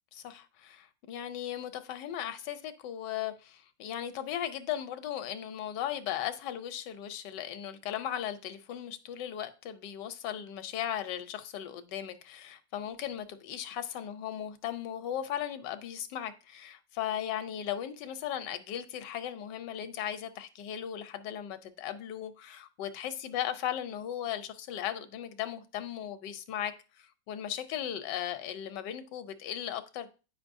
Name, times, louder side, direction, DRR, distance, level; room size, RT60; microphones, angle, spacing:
voice 1, 0.1-30.1, left 10 dB, 75° left, 1.3 m, -37 dB
9.4 x 5.3 x 2.6 m
omnidirectional pair, 2.0 m